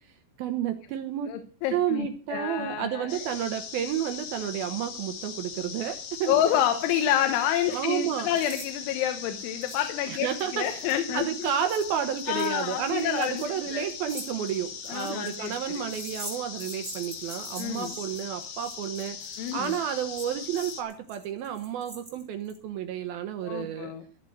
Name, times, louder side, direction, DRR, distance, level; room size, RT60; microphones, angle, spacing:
voice 1, 0.4-1.3 1.7-6.4 7.7-8.3 10.1-10.8 11.1-19.2 19.5-23.9, right 9 dB, 75° right, 8 dB, 2.3 m, -31 dB
voice 2, 1.3-3.2 6.3-11.5 12.3-13.4 13.7-13.9 14.9-15.9 17.6-18.0 19.4-19.8 23.4-24.0, left 10 dB, 90° left, 8 dB, 3.5 m, -28 dB
sound 1, 3.1-20.8, left 6 dB, 55° left, 2.7 m, -40 dB
sound 2, 8.4-8.7 8.9-9.0 9.6-9.9 10.2-22.6, right 2 dB, 10° right, 3.7 m, -44 dB
14.5 x 7.4 x 7.7 m, 0.43 s
omnidirectional pair, 5.3 m